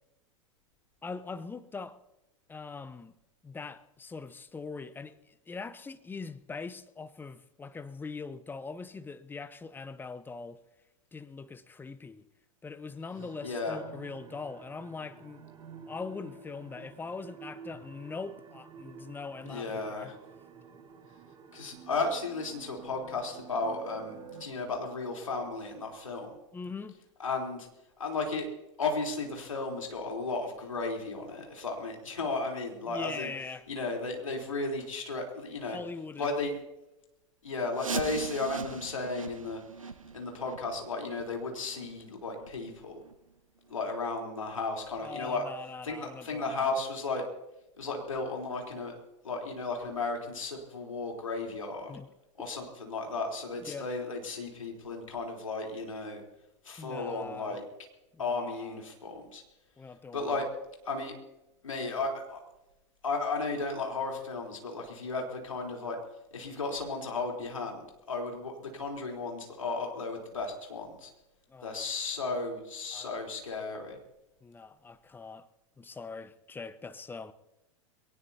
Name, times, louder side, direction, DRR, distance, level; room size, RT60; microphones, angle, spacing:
voice 1, 1.0-2.0 2.5-3.1 3.4-5.2 5.5-10.6 11.1-12.2 12.6-15.4 15.9-20.1 26.5-27.0 32.9-33.7 35.7-36.4 45.0-46.7 51.9-52.1 53.6-53.9 56.8-57.6 58.1-58.8 59.8-60.5 71.5-71.9 72.9-73.1 74.4-75.5 75.8-77.3, left 4 dB, 10° left, 0.8 m, -42 dB
sound 1, 13.2-24.4, right 6 dB, 30° right, 3.7 m, -50 dB
voice 2, 13.4-13.8 19.4-20.1 21.5-26.3 27.2-27.7 28.0-28.5 28.8-33.3 33.7-35.8 36.2-36.5 37.4-39.6 40.1-43.0 43.7-45.5 45.8-47.2 47.8-49.0 49.2-51.9 52.4-56.2 56.6-57.6 58.2-59.4 60.1-60.5 60.8-61.2 61.6-62.4 63.0-66.0 66.3-71.1 71.6-74.0, left 3 dB, 80° left, 3.7 m, -34 dB
sound 2, 37.7-43.3 43.7-43.8 44.3-44.4 45.0-45.1 45.7-45.8, right 5 dB, 90° right, 0.6 m, -41 dB
22.5 x 18.5 x 2.8 m
figure-of-eight pair, 90°, 17 cm